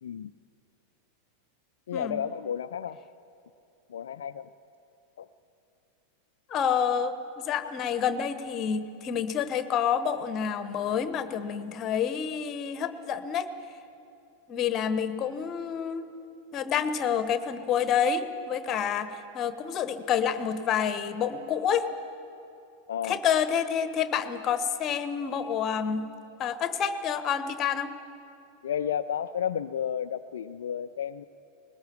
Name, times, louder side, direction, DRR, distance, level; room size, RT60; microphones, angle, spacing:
voice 1, 0.0-0.3 1.9-3.0 3.9-4.5 5.2-5.3 22.9-23.2 28.6-31.2, left 9 dB, 65° left, 10 dB, 0.4 m, -32 dB
voice 2, 1.9-2.2 6.5-13.5 14.5-16.1 16.5-21.9 23.0-26.1 26.4-27.9, left 7 dB, 30° left, 12 dB, 1.1 m, -28 dB
20.5 x 19.5 x 7.1 m, 2.7 s
figure-of-eight pair, 90°, 0 cm